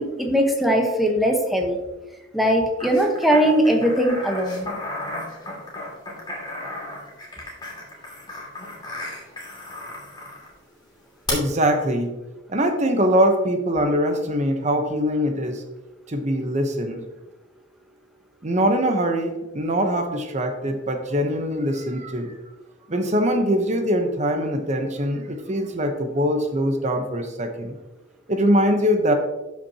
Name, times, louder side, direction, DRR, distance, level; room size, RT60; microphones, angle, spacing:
voice 1, 0.0-1.8 2.3-4.7, equal, ahead, 1 dB, 1.2 m, -20 dB
sound 1, 2.8-10.5 11.3-11.4, left 2 dB, 25° left, 2.5 m, -34 dB
voice 2, 11.3-12.1 12.5-15.6 16.1-17.0 18.4-22.3 22.9-27.7 28.3-29.1, equal, 35° right, 5 dB, 1.0 m, -22 dB
12.5 x 5.8 x 2.9 m, 1.1 s
head